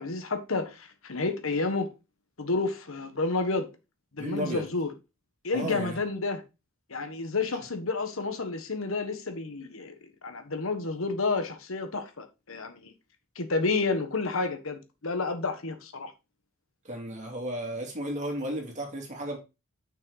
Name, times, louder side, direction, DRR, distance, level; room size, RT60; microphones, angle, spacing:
voice 1, 0.0-1.9 2.4-3.7 4.1-4.9 5.4-6.4 6.9-9.9 10.2-12.9 13.3-16.1, left 3 dB, 80° left, 1.3 m, -30 dB
voice 2, 4.2-4.6 5.5-6.0 16.9-19.4, equal, 35° right, 2.6 m, -33 dB
6.3 x 6.1 x 4.0 m
head